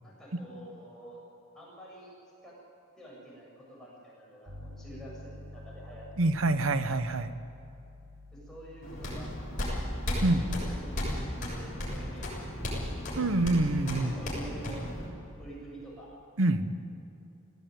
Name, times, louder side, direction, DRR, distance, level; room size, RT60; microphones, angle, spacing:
voice 1, 0.0-1.2 1.5-2.1 2.4-2.6 3.0-6.5 8.3-9.3 9.7-13.3 13.8-14.9 15.4-16.1, right 1 dB, ahead, -6 dB, 7.4 m, -48 dB
Piano, 4.5-15.8, left 2 dB, 65° right, 3.8 m, -50 dB
voice 2, 6.2-7.3 10.2-10.4 13.2-14.1 16.4-16.7, right 2 dB, 80° right, 11 dB, 1.0 m, -26 dB
sound 1, 8.8-15.1, equal, 40° left, 7.2 m, -34 dB
19.5 x 16.5 x 9.3 m, 2.7 s
head